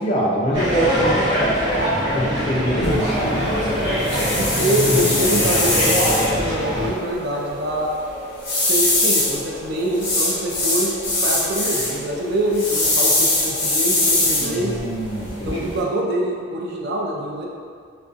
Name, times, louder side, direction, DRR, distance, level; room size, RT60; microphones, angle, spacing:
voice 1, 0.0-1.7 2.1-3.5 14.4-15.7, right 1 dB, 30° left, -5 dB, 0.4 m, -24 dB
sound 1, 0.5-6.9, equal, 20° right, 0.9 m, -22 dB
sound 2, 2.8-15.8, left 2 dB, 50° left, 1.0 m, -23 dB
voice 2, 4.4-7.9 8.7-14.8 15.4-17.5, right 1 dB, 55° right, -2 dB, 0.3 m, -25 dB
2.4 x 2.2 x 2.5 m, 2.1 s
head